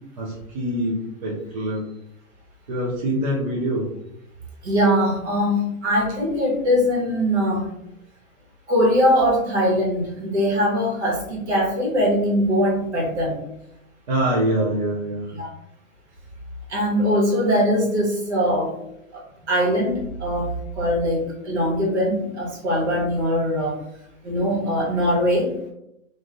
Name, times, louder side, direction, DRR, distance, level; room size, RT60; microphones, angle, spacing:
voice 1, 0.2-1.9 2.7-3.9 14.1-15.3, right 1 dB, 30° right, -5 dB, 0.5 m, -24 dB
voice 2, 4.6-7.7 8.7-13.4 15.3-15.5 16.7-18.7 19.1-19.2 19.5-23.8 24.2-25.5, equal, 55° right, -2 dB, 1.3 m, -21 dB
3.1 x 2.5 x 2.5 m, 0.81 s
hypercardioid pair, 155°, 41 cm